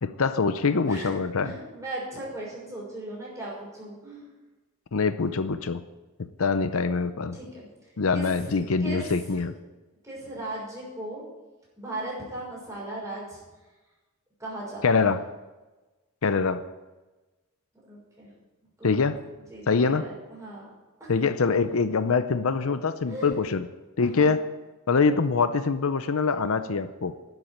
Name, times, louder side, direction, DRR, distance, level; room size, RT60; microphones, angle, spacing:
voice 1, 0.0-1.5 4.9-5.8 6.4-7.3 8.0-9.5 14.8-15.2 16.2-16.6 18.8-19.2 19.7-20.1 21.1-23.6 24.0-24.4 24.9-27.1, left 4 dB, 65° left, 11 dB, 0.6 m, -24 dB
voice 2, 1.4-4.2 7.3-8.5 8.8-9.5 10.0-11.2 11.8-13.4 14.4-14.8 17.8-18.3 18.8-19.1 19.5-20.7 21.0-21.1 23.1-23.4 24.0-24.4 26.5-26.6, right 1 dB, 15° right, -5 dB, 6.0 m, -38 dB
11.5 x 8.1 x 8.9 m, 1.2 s
head